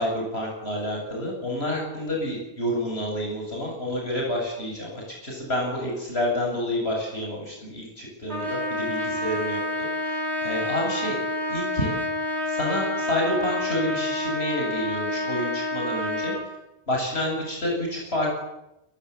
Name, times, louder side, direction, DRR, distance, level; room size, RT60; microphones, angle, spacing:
voice 1, 0.0-9.6 10.1-11.2 11.5-11.9 12.5-16.3 16.9-18.4, left 1 dB, 70° left, -2 dB, 8.2 m, -29 dB
Trumpet, 8.3-16.5, left 1 dB, 75° right, 5.5 m, -28 dB
29.0 x 22.0 x 8.5 m, 0.90 s
omnidirectional pair, 1.1 m